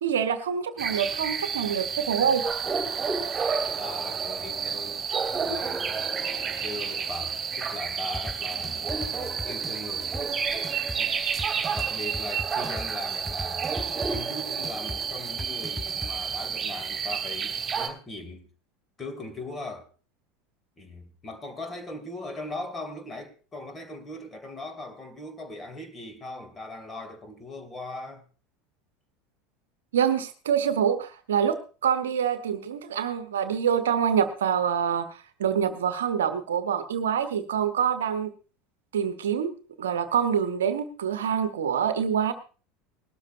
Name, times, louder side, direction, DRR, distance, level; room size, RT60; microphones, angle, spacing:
voice 1, 0.0-2.4 29.9-38.3 38.9-39.5 39.8-42.3, right 8 dB, 70° right, 1.1 m, -26 dB
sound 1, 0.8-17.9, right 6 dB, 20° right, 2.9 m, -30 dB
voice 2, 3.8-5.0 5.4-6.1 6.5-10.2 11.0-11.2 11.7-18.5 19.0-19.9 20.8-28.2, left 2 dB, 20° left, 2.5 m, -39 dB
sound 2, 8.1-16.1, equal, 5° right, 0.7 m, -37 dB
19.5 x 13.0 x 2.6 m
figure-of-eight pair, 75°, 0 cm